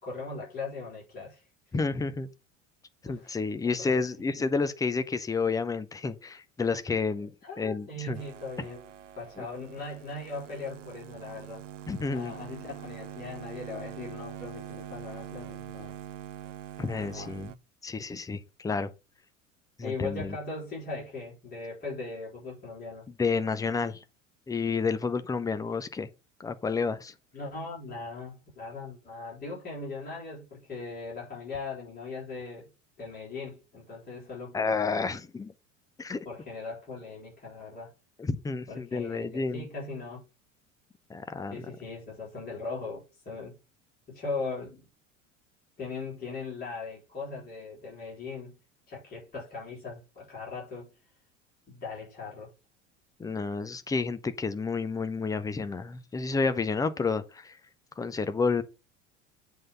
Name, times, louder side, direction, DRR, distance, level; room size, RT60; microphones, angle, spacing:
voice 1, 0.0-1.4 3.1-3.4 3.6-4.0 4.3-4.7 7.4-8.8 9.2-11.6 12.1-16.0 17.0-17.3 19.8-23.1 27.3-32.7 33.0-34.8 36.2-37.9 38.7-40.2 41.5-43.5 44.1-44.9 45.8-48.5 48.9-50.9 51.7-52.5, left 3 dB, 25° left, 4.2 m, -39 dB
voice 2, 1.7-2.3 3.0-7.3 7.6-8.2 9.4-9.5 11.9-12.3 16.8-17.5 17.8-18.9 19.8-20.3 23.2-24.0 24.5-26.1 26.4-27.1 34.5-35.5 36.0-36.2 38.2-39.7 41.1-41.6 53.2-57.6 58.0-58.6, left 4 dB, 10° left, 0.7 m, -30 dB
sound 1, 8.1-17.6, right 11 dB, 75° right, 0.6 m, -44 dB
7.7 x 3.8 x 5.4 m
figure-of-eight pair, 75°, 37 cm